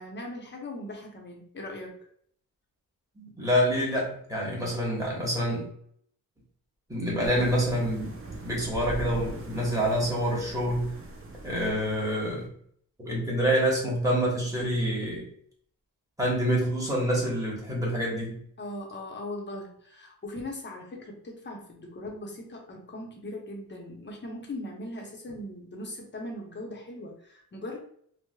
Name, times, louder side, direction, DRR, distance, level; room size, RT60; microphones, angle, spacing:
voice 1, 0.0-2.0 18.6-27.8, left 1 dB, 30° left, 0 dB, 0.7 m, -39 dB
voice 2, 3.2-5.7 6.9-8.1 8.4-10.9 11.4-12.5 13.0-15.3 16.2-18.4, equal, 10° right, -4 dB, 1.1 m, -27 dB
sound 1, 7.2-12.5, right 2 dB, 40° right, 0.6 m, -41 dB
4.6 x 2.1 x 2.2 m, 0.63 s
wide cardioid pair, 150°, 36 cm